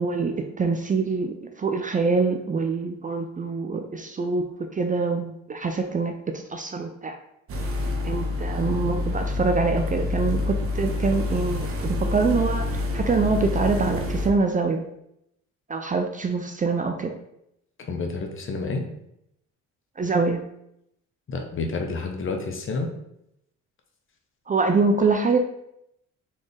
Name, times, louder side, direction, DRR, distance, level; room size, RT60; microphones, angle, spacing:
voice 1, 0.0-4.4 4.7-7.2 8.0-14.8 15.7-17.1 20.0-20.4 24.5-25.4, right 4 dB, 25° right, 5 dB, 0.4 m, -25 dB
sound 1, 7.5-14.3, left 2 dB, 45° right, 0.8 m, -27 dB
voice 2, 17.9-18.9 21.3-22.9, left 3 dB, 40° left, 3 dB, 0.9 m, -29 dB
4.2 x 3.6 x 3.3 m, 0.78 s
cardioid pair, 90°, 30 cm